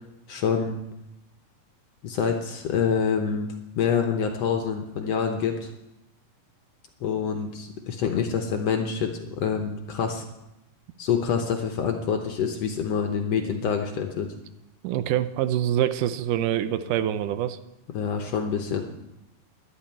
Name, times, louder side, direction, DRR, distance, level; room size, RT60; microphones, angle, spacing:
voice 1, 0.3-0.8 2.0-3.5 3.7-5.7 7.0-10.2 11.0-14.3 17.9-18.8, left 6 dB, 65° left, 4 dB, 1.6 m, -26 dB
voice 2, 14.8-17.6, right 11 dB, 75° right, 12 dB, 2.1 m, -25 dB
11.0 x 8.9 x 9.0 m, 0.92 s
omnidirectional pair, 3.9 m